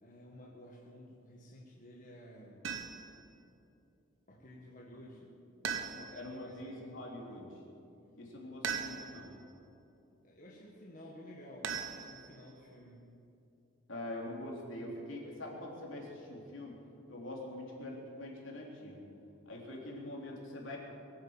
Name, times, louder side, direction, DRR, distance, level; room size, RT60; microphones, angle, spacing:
voice 1, 0.0-2.7 4.3-7.4 10.2-13.1, left 1 dB, 40° left, -3 dB, 1.8 m, -53 dB
sound 1, 2.6-3.2 5.6-6.4 8.6-9.3 11.6-12.5, right 6 dB, 70° right, 1.1 m, -39 dB
voice 2, 5.9-7.5 8.2-9.3 13.9-16.8 17.1-19.1 19.5-20.8, left 1 dB, 70° left, -2 dB, 3.5 m, -44 dB
22.5 x 8.8 x 7.2 m, 2.7 s
head